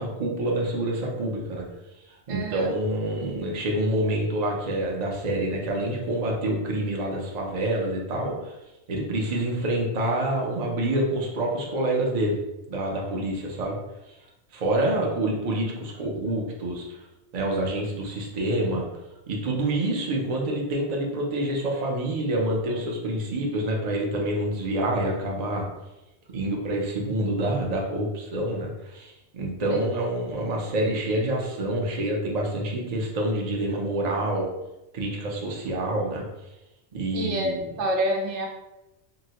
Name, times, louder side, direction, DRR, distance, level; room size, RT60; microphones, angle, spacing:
voice 1, 0.0-1.6 2.3-8.5 8.9-12.4 12.7-13.8 14.5-16.8 17.3-18.9 19.3-25.7 26.3-34.5 34.9-36.2 36.9-37.6, right 1 dB, 45° right, -1 dB, 0.6 m, -27 dB
voice 2, 2.3-2.7 29.7-29.8 37.1-38.5, right 1 dB, 80° right, 1 dB, 0.9 m, -27 dB
3.7 x 2.1 x 2.8 m, 0.96 s
omnidirectional pair, 1.2 m